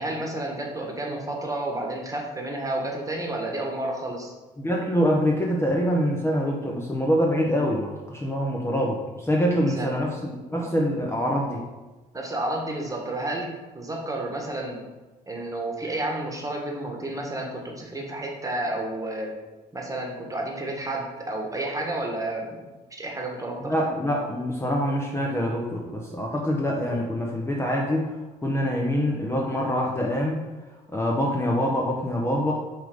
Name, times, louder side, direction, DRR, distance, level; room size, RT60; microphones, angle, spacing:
voice 1, 0.0-4.3 9.5-9.9 10.5-10.7 12.1-14.8 15.3-19.3 19.7-22.6 22.9-23.7, right 1 dB, 15° right, 0 dB, 1.6 m, -31 dB
voice 2, 4.6-11.6 23.6-28.1 28.4-30.4 30.9-32.5, equal, 15° left, -1 dB, 1.0 m, -25 dB
5.6 x 3.7 x 5.1 m, 1.2 s
hypercardioid pair, 55°, 19 cm